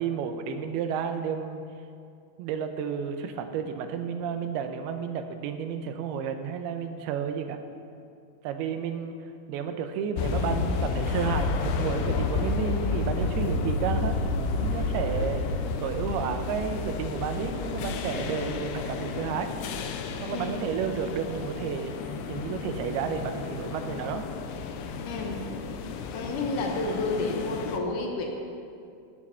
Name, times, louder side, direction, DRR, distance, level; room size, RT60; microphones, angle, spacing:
voice 1, 0.0-1.6 2.4-7.6 8.4-9.1 9.5-14.2 14.6-19.5 20.2-21.9 22.3-24.3, right 7 dB, 90° right, 7 dB, 2.7 m, -31 dB
sound 1, 10.2-27.8, left 4 dB, 90° left, 2.8 m, -31 dB
voice 2, 20.3-21.0 25.1-25.4 26.1-28.3, left 2 dB, 70° left, 1 dB, 2.3 m, -31 dB
15.5 x 7.5 x 5.5 m, 2.4 s
omnidirectional pair, 4.5 m